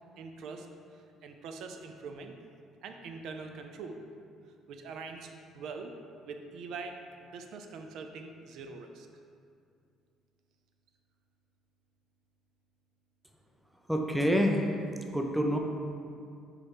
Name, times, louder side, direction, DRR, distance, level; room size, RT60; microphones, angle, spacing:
voice 1, 0.2-0.7 1.2-2.3 2.8-4.0 4.7-5.9 6.2-9.1, right 4 dB, 60° right, 5 dB, 0.4 m, -43 dB
voice 2, 13.9-14.7 15.1-15.6, equal, ahead, 2 dB, 0.4 m, -26 dB
4.8 x 4.2 x 4.8 m, 2.4 s
cardioid pair, 165°, 0 cm